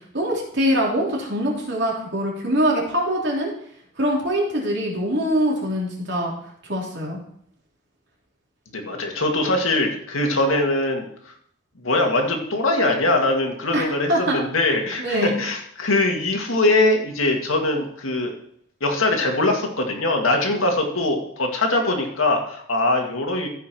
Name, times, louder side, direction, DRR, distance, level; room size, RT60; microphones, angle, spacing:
voice 1, 0.1-3.5 4.0-6.3 6.6-7.2 13.7-14.4 15.0-15.4, equal, 55° right, -3 dB, 3.4 m, -23 dB
voice 2, 8.7-11.0 11.8-18.3 18.8-23.5, left 2 dB, 85° left, 2 dB, 2.1 m, -22 dB
14.5 x 5.6 x 4.5 m, 0.67 s
head